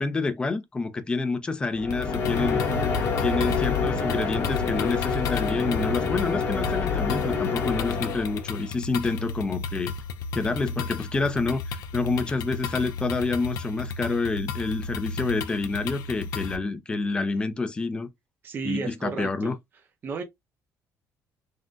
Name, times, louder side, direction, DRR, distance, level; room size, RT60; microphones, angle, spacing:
voice 1, 0.0-2.6 3.2-9.9 10.3-18.1 18.6-19.5, left 3 dB, 15° left, 0.4 m, -28 dB
sound 1, 1.7-8.6, left 5 dB, 50° left, 1.1 m, -27 dB
sound 2, 1.9-16.6, left 4 dB, 75° left, 0.4 m, -34 dB
voice 2, 18.4-19.5 20.0-20.2, right 5 dB, 35° right, 0.6 m, -33 dB
3.6 x 2.1 x 2.5 m
cardioid pair, 165°, 6 cm